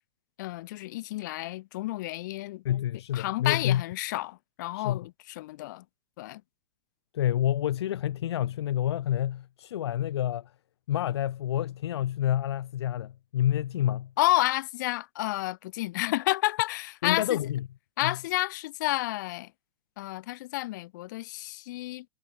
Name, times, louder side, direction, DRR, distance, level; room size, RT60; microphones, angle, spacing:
voice 1, 0.4-2.6 3.1-5.8 6.2-6.4 14.2-17.4 18.0-19.5 20.0-22.1, left 18 dB, 40° left, 4.8 m, -30 dB
voice 2, 2.6-3.8 4.7-5.0 7.1-10.5 10.9-14.1 17.0-17.7 18.0-18.2, left 11 dB, 60° left, 2.9 m, -28 dB
supercardioid pair, 180°, 15 cm